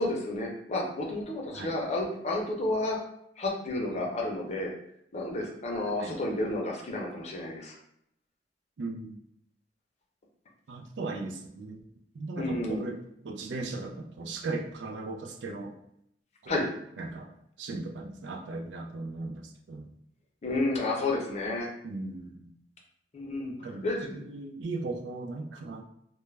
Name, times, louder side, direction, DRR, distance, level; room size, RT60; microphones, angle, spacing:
voice 1, 0.0-3.0 3.4-4.7 5.1-7.8 12.4-12.8 16.5-16.6 20.4-21.7 23.1-23.5 23.8-24.2, left 2 dB, 40° left, -1 dB, 0.5 m, -31 dB
voice 2, 8.8-9.2 10.7-11.8 12.1-13.0 13.2-15.8 16.4-16.7 17.0-17.3 17.6-19.9 21.8-22.5 23.5-25.8, right 3 dB, 90° right, 2 dB, 0.4 m, -37 dB
2.3 x 2.1 x 3.1 m, 0.75 s
head